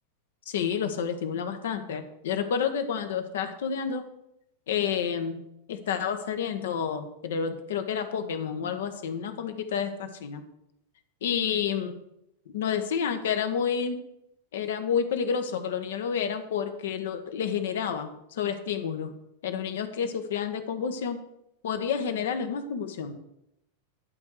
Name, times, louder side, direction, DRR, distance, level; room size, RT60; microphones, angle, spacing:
voice 1, 0.5-4.1 4.7-5.4 5.7-10.4 11.2-12.0 12.5-14.0 14.5-19.1 19.4-21.2 21.6-23.2, left 7 dB, 60° left, 7 dB, 1.2 m, -29 dB
11.5 x 4.7 x 8.1 m, 0.82 s
figure-of-eight pair, 90°, 0 cm